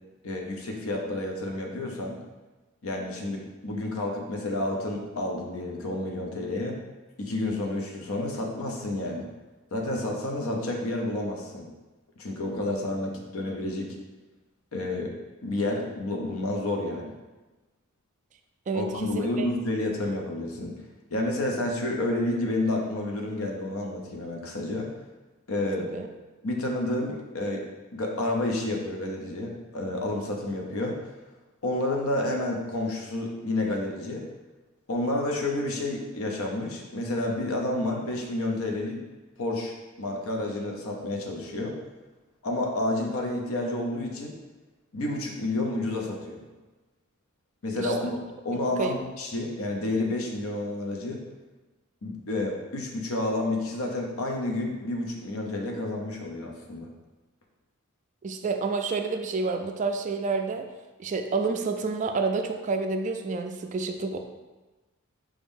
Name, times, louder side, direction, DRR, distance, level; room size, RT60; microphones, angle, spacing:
voice 1, 0.2-2.2 2.8-6.8 7.2-9.3 9.7-11.7 12.2-13.9 14.7-15.1 15.4-17.1 18.7-20.7 21.1-24.9 25.5-25.9 26.4-27.6 27.9-31.0 31.6-34.2 34.9-39.0 39.4-41.7 42.4-44.4 44.9-46.4 47.6-51.2 52.0-56.9, left 2 dB, 75° left, 1 dB, 0.7 m, -30 dB
voice 2, 18.7-19.5 25.8-26.1 47.8-48.1 48.8-49.0 58.2-60.7 61.0-64.2, right 4 dB, 35° right, 6 dB, 0.3 m, -29 dB
4.8 x 2.6 x 3.6 m, 1.2 s
head